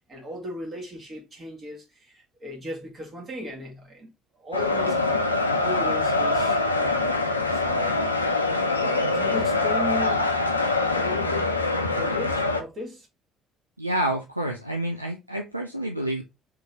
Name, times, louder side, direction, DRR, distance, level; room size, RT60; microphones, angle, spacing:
voice 1, 0.1-5.1 5.6-7.2 7.5-8.0 8.8-10.3 10.9-13.1, left 1 dB, 35° right, 1.8 m, -37 dB
sound 1, 4.5-12.6, left 2 dB, 85° left, 0.4 m, -24 dB
voice 2, 13.8-16.2, right 1 dB, 90° right, 0.3 m, -28 dB
3.6 x 3.0 x 3.3 m
figure-of-eight pair, 55°, 0 cm